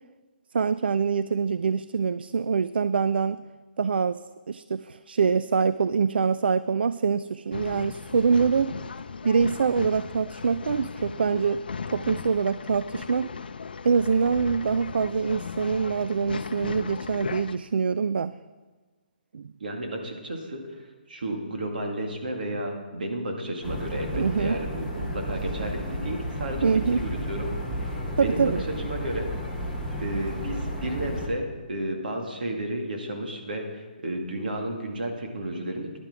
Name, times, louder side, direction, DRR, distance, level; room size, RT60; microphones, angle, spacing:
voice 1, 0.5-3.4 3.8-4.2 4.5-8.7 9.2-11.6 11.9-13.3 13.8-18.4 19.3-19.5 24.1-24.6 26.6-27.0 28.2-28.6, right 5 dB, 80° right, 15 dB, 0.3 m, -24 dB
Male speech man speaking / Chatter / Rattle, 7.5-17.6, left 5 dB, 70° left, 0.5 m, -37 dB
voice 2, 19.6-27.5 27.8-28.5 28.8-29.3 30.0-36.0, right 1 dB, 65° right, 2 dB, 2.3 m, -32 dB
sound 1, 23.6-31.3, equal, 5° right, 0.9 m, -32 dB
10.5 x 9.0 x 6.2 m, 1.3 s
hypercardioid pair, 180°, 5 cm